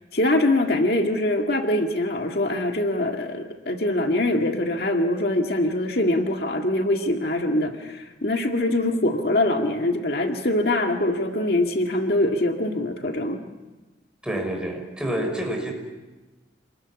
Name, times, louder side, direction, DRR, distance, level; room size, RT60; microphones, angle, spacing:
voice 1, 0.1-13.4, left 1 dB, 60° left, 3 dB, 1.9 m, -23 dB
voice 2, 14.2-15.7, right 1 dB, 5° right, 1 dB, 5.9 m, -28 dB
28.5 x 21.5 x 9.8 m, 1.2 s
head